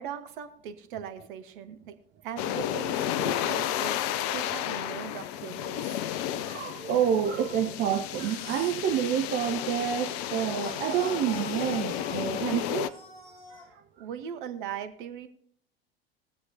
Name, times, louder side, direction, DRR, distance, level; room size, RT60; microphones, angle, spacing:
voice 1, 0.0-1.9 2.2-4.0 4.3-6.0 14.0-15.3, right 9 dB, 55° right, 1.2 m, -39 dB
sound 1, 2.4-12.9, left 11 dB, 40° left, 0.5 m, -32 dB
voice 2, 6.3-12.9 13.5-13.6, right 9 dB, 35° right, 0.8 m, -28 dB
sound 2, 8.1-8.9 10.6-13.7, left 2 dB, 75° left, 1.9 m, -45 dB
22.0 x 7.8 x 2.8 m
figure-of-eight pair, 80°, 31 cm